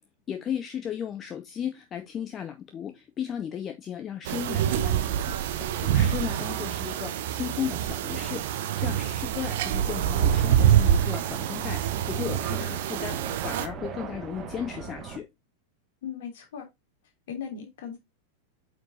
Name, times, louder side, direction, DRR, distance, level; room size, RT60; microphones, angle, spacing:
voice 1, 0.3-5.4 5.6-8.4 8.8-15.2, left 9 dB, 25° left, 0.8 m, -35 dB
sound 1, 4.3-13.7, right 10 dB, 55° right, 0.9 m, -26 dB
sound 2, 10.2-15.2, right 6 dB, 30° right, 1.3 m, -40 dB
voice 2, 16.0-16.7 17.3-18.0, left 7 dB, 55° left, 3.1 m, -37 dB
8.5 x 4.9 x 2.9 m
figure-of-eight pair, 90°, 0 cm